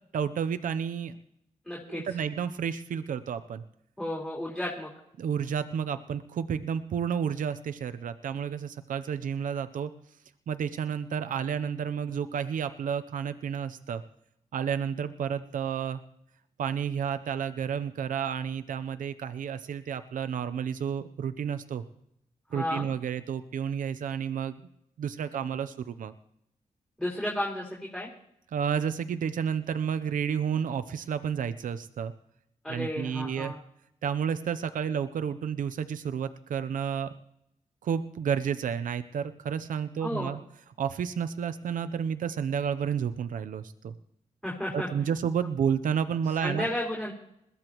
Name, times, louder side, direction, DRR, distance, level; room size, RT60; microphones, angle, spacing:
voice 1, 0.1-1.2 1.9-3.6 5.2-9.9 10.5-14.0 14.5-16.0 16.6-21.8 22.5-24.6 25.0-26.1 28.5-32.1 32.7-33.5 34.0-37.1 37.8-40.4 40.8-43.9 44.7-46.7, right 7 dB, 85° right, 11 dB, 0.7 m, -31 dB
voice 2, 1.7-2.0 4.0-4.9 22.5-22.8 27.0-28.1 32.6-33.6 40.0-40.3 44.4-44.9 46.4-47.1, left 1 dB, 5° left, -4 dB, 4.3 m, -32 dB
21.5 x 14.5 x 3.0 m, 0.77 s
cardioid pair, 65°, 13 cm